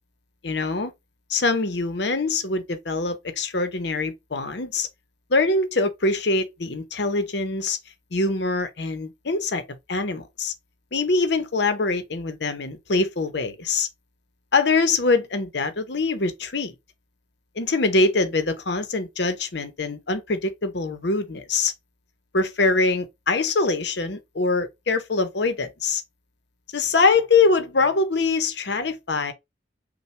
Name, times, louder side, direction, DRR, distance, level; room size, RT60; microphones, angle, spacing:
voice 1, 0.4-0.9 1.3-4.9 5.3-7.8 8.1-9.6 9.9-10.5 10.9-13.9 14.5-16.7 17.6-21.7 22.3-26.0 26.7-29.3, left 3 dB, 60° left, 0.7 m, -23 dB
5.6 x 2.2 x 3.2 m
head